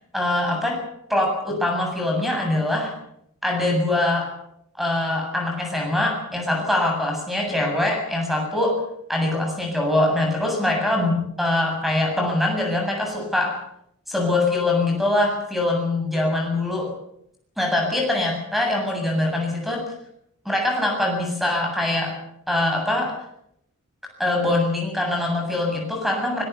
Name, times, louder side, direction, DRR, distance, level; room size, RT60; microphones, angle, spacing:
voice 1, 0.1-0.8 1.1-2.9 3.4-4.3 4.8-8.8 9.1-13.6 14.1-16.9 17.6-19.8 20.4-22.2 22.5-23.2 24.2-26.4, left 1 dB, ahead, 2 dB, 7.7 m, -23 dB
24.5 x 19.0 x 7.0 m, 0.73 s
head